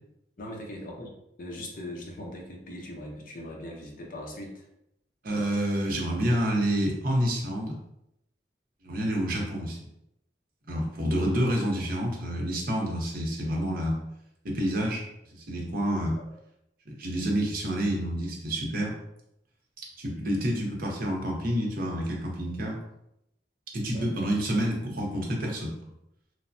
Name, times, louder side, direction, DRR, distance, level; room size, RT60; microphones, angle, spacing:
voice 1, 0.4-1.1 1.4-4.7 16.2-16.3 23.9-24.1, left 1 dB, 50° left, 0 dB, 0.6 m, -40 dB
voice 2, 5.2-7.8 8.8-9.8 10.7-14.0 14.4-15.0 15.5-16.2 16.9-18.9 20.0-22.8 23.7-25.7, equal, 55° right, -1 dB, 0.7 m, -28 dB
3.2 x 2.1 x 2.5 m, 0.81 s
head